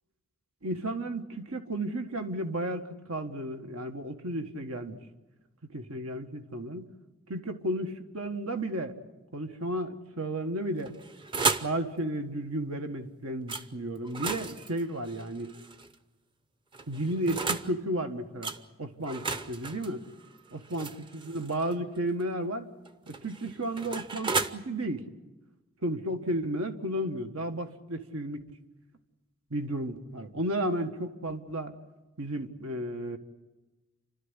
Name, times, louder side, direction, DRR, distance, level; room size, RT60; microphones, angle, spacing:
voice 1, 0.6-5.0 5.7-6.9 7.3-8.9 9.3-10.9 11.6-15.5 16.9-18.5 18.8-20.0 20.5-22.7 23.1-25.1 25.8-28.4 29.5-31.7 32.2-33.2, right 1 dB, 75° right, 7 dB, 1.7 m, -33 dB
sound 1, 10.8-11.8 13.5-13.7 14.0-15.9 16.7-17.7 18.4-18.6 19.0-21.7 22.9-24.5, right 4 dB, 20° right, 0.7 m, -33 dB
29.0 x 13.0 x 9.9 m, 1.2 s
head